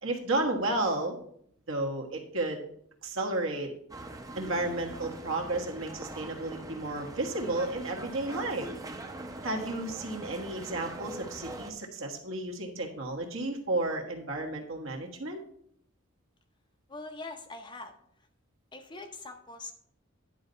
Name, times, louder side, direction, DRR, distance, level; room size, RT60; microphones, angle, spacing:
voice 1, 0.0-1.2 1.7-2.6 3.0-3.7 4.3-8.7 9.4-15.4, right 2 dB, 70° right, 2 dB, 1.4 m, -32 dB
sound 1, 3.9-11.7, right 1 dB, 15° right, 0.6 m, -42 dB
voice 2, 16.9-17.9 18.7-19.7, left 3 dB, 20° left, 6 dB, 0.6 m, -42 dB
10.0 x 4.0 x 5.5 m, 0.67 s
head